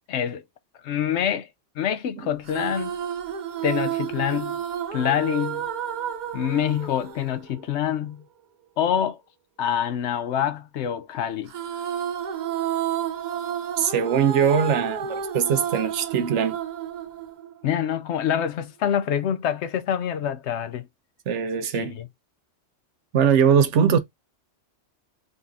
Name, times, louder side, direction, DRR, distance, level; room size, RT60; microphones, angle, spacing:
voice 1, 0.1-0.4 0.8-1.5 1.8-2.9 3.6-4.6 4.9-5.7 6.3-8.2 8.8-9.2 9.6-11.5 17.6-20.9 21.7-22.1, left 9 dB, 70° left, 0.9 m, -26 dB
sound 1, 2.4-8.0 11.5-17.9, right 9 dB, 55° right, 0.5 m, -31 dB
voice 2, 13.8-16.6 21.3-22.0 23.1-24.0, right 7 dB, 75° right, 1.0 m, -21 dB
4.0 x 2.7 x 3.5 m
omnidirectional pair, 1.2 m